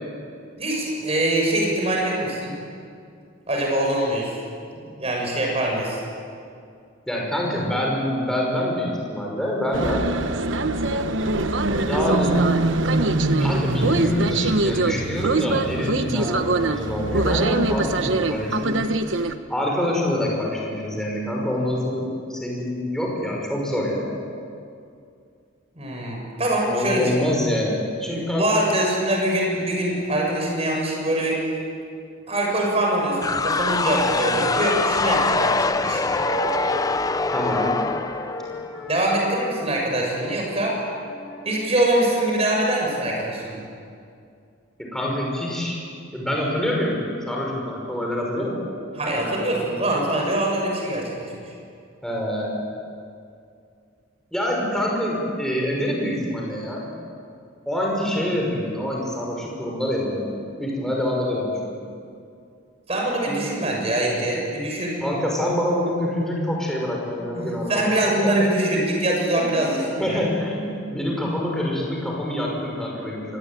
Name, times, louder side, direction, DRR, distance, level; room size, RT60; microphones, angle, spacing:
voice 1, 0.6-2.6 3.5-4.4 5.0-6.0 25.8-27.2 28.1-31.4 32.3-36.1 38.5-38.6 38.9-40.7 41.4-43.6 49.0-51.5 62.9-65.0 67.2-70.2, right 1 dB, 30° right, -1 dB, 7.2 m, -23 dB
voice 2, 7.1-10.1 11.7-12.4 13.4-18.9 19.5-24.2 26.7-28.6 37.3-37.7 44.8-45.8 46.1-47.0 47.3-48.6 52.0-52.7 54.3-56.8 57.7-61.7 63.3-63.5 65.0-68.3 69.3-73.4, left 1 dB, 5° left, -2 dB, 5.8 m, -26 dB
sound 1, 9.7-19.3, right 2 dB, 65° right, 1.2 m, -23 dB
sound 2, 33.1-37.0 37.3-41.7, equal, 70° left, 3.8 m, -37 dB
sound 3, 33.2-39.0, left 3 dB, 20° left, 0.6 m, -24 dB
25.5 x 21.0 x 9.2 m, 2.4 s
head